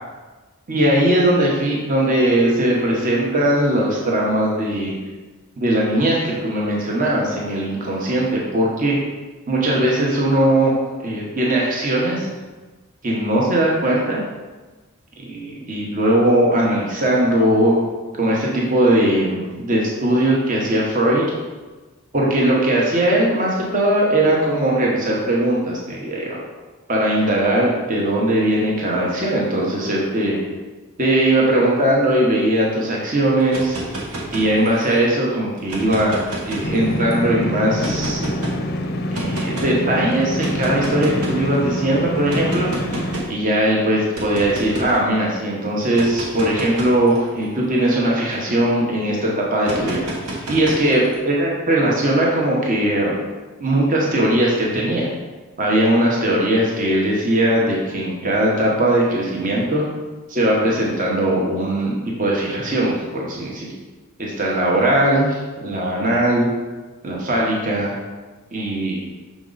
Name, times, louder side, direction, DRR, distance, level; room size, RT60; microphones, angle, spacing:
voice 1, 0.7-4.9 5.6-9.0 9.5-10.7 11.0-12.3 13.0-14.2 15.3-17.8 18.2-21.2 22.1-26.4 26.9-30.4 31.0-33.8 34.3-36.2 36.5-38.2 39.1-42.7 43.3-50.1 50.5-53.1 53.6-55.1 55.6-59.8 60.3-61.9 62.2-63.7 64.2-66.5 67.0-67.9 68.5-69.0, right 1 dB, 35° right, -3 dB, 0.9 m, -19 dB
sound 1, 33.4-35.0 35.6-37.1 37.8-38.6 39.1-39.7 40.4-41.5 42.3-43.4 44.1-45.0 45.8-48.7 49.6-51.2, right 1 dB, 85° right, 1.3 m, -30 dB
sound 2, 36.6-43.2, left 1 dB, 45° left, 0.5 m, -26 dB
6.2 x 4.5 x 3.9 m, 1.3 s
head